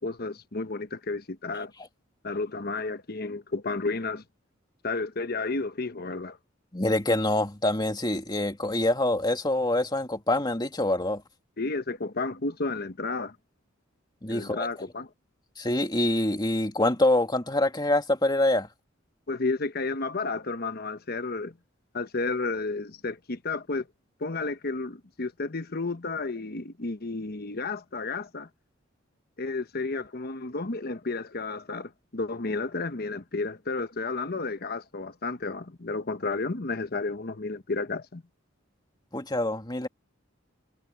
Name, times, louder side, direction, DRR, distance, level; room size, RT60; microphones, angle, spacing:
voice 1, 0.0-1.7 2.2-4.2 4.8-6.4 11.6-13.4 14.3-15.1 19.3-21.5 21.9-23.9 24.2-28.5 29.4-38.2, left 3 dB, 50° left, 1.1 m, -32 dB
voice 2, 6.7-11.2 14.2-14.7 15.6-18.7 39.1-39.9, left 1 dB, 20° left, 2.4 m, -25 dB
head